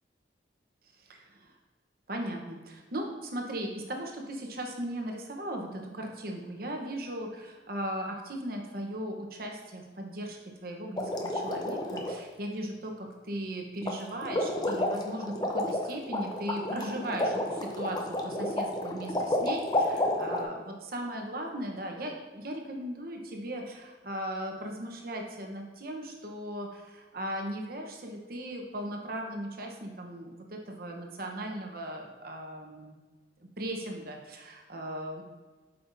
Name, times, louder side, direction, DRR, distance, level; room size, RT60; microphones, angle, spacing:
voice 1, 1.0-1.6 2.1-33.0 33.4-35.2, right 1 dB, 50° right, 1 dB, 1.0 m, -38 dB
sound 1, 11.0-12.1 13.8-14.0 14.2-20.4, left 1 dB, 20° left, 0.6 m, -30 dB
8.1 x 5.6 x 2.7 m, 1.3 s
head